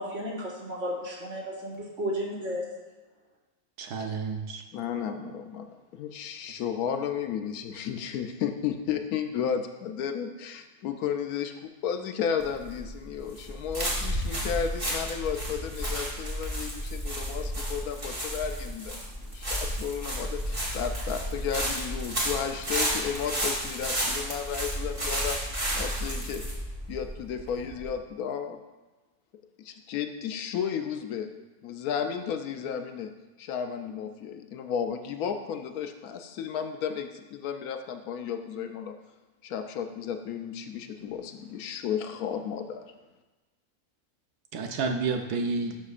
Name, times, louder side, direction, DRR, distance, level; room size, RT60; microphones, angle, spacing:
voice 1, 0.0-2.6, equal, 55° right, -3 dB, 1.8 m, -33 dB
voice 2, 3.8-4.6 44.5-45.8, right 4 dB, 85° right, 4 dB, 1.3 m, -30 dB
voice 3, 4.7-19.0 19.3-25.4 25.7-26.4 26.9-28.6 29.6-31.3 31.6-33.1 33.4-38.9 39.4-42.8, left 7 dB, 75° left, 7 dB, 1.0 m, -33 dB
sound 1, 12.4-27.9, equal, 20° right, 1.5 m, -32 dB
11.5 x 5.9 x 2.5 m, 1.2 s
omnidirectional pair, 1.6 m